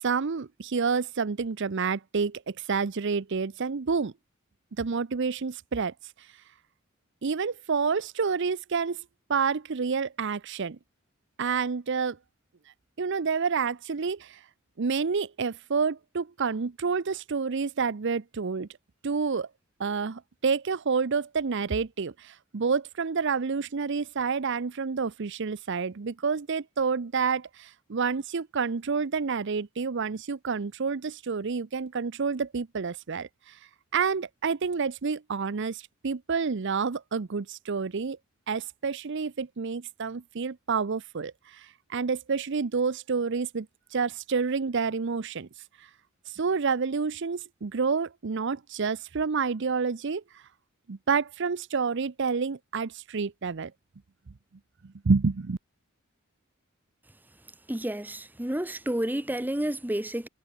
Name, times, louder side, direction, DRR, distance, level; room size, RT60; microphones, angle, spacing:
voice 1, 0.0-4.1 4.8-5.9 7.2-9.0 9.3-10.8 11.4-12.2 13.0-14.4 14.8-18.7 19.0-19.5 19.8-33.6 33.9-38.2 38.5-45.5 45.8-45.9 46.3-50.4 50.9-53.7 54.8-55.6, right 5 dB, 60° right, 0.6 m, -29 dB
voice 2, 57.7-60.3, right 1 dB, 10° right, 1.0 m, -30 dB
head